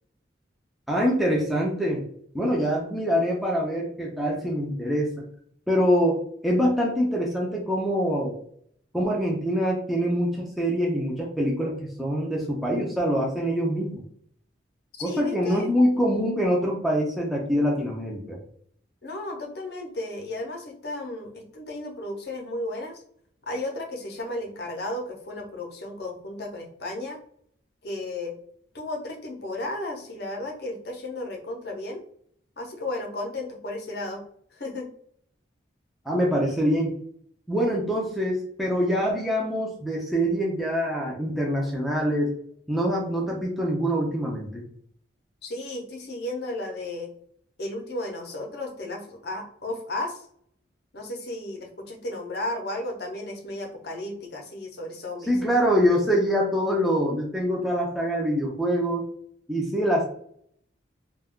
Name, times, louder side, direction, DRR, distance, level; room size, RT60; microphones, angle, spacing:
voice 1, 0.9-2.0 2.3-5.1 5.7-8.3 8.9-14.0 15.0-18.4 36.1-36.9 37.5-42.3 42.7-44.6 55.2-59.1 59.5-60.0, equal, ahead, -3 dB, 0.4 m, -24 dB
voice 2, 15.0-15.7 19.0-23.0 23.5-27.2 27.8-28.3 28.7-32.0 32.6-34.2 34.5-34.9 45.4-47.1 47.6-50.2 50.9-55.3, left 2 dB, 60° left, 1 dB, 0.6 m, -34 dB
2.3 x 2.2 x 3.5 m, 0.64 s
head